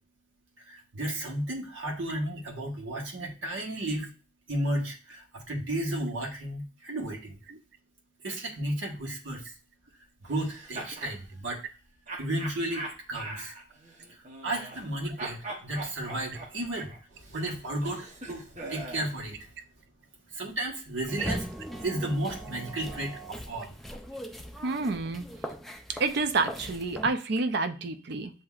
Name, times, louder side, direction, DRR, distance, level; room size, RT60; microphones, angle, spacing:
voice 1, 0.6-4.1 4.5-7.4 8.2-9.5 10.2-11.6 12.2-13.5 14.1-19.5 20.3-21.5 21.8-23.8, right 1 dB, 75° right, -1 dB, 1.4 m, -33 dB
sound 1, 10.3-11.2 12.1-14.9 15.2-19.1, right 2 dB, 40° right, 0.9 m, -41 dB
sound 2, 21.1-27.1, equal, ahead, 0.4 m, -40 dB
voice 2, 24.6-25.2 26.0-28.3, right 3 dB, 55° right, 9 dB, 0.5 m, -29 dB
7.4 x 2.7 x 2.4 m, 0.35 s
head